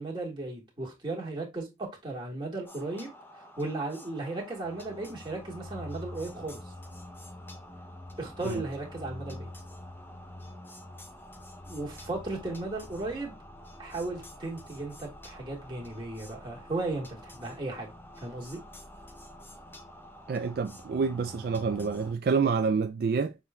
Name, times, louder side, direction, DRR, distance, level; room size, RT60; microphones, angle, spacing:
voice 1, 0.0-3.1 3.6-6.6 8.2-9.5 11.6-13.3 13.8-17.9 18.2-18.6, right 2 dB, 30° right, 1.8 m, -35 dB
sound 1, 2.6-22.1, left 1 dB, 10° left, 0.5 m, -46 dB
voice 2, 20.3-23.4, right 5 dB, 55° right, 0.3 m, -28 dB
6.4 x 3.6 x 2.3 m
head